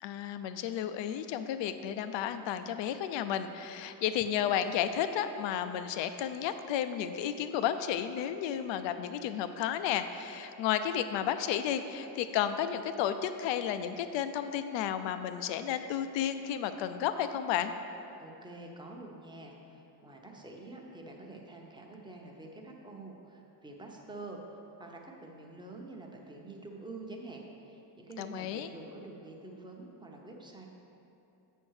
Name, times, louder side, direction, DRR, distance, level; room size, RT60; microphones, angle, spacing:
voice 1, 0.0-17.7 28.2-28.7, left 9 dB, 75° left, 10 dB, 0.6 m, -32 dB
voice 2, 18.2-30.7, right 2 dB, 10° right, 0 dB, 0.8 m, -47 dB
7.4 x 4.5 x 6.4 m, 2.8 s
cardioid pair, 125°, 44 cm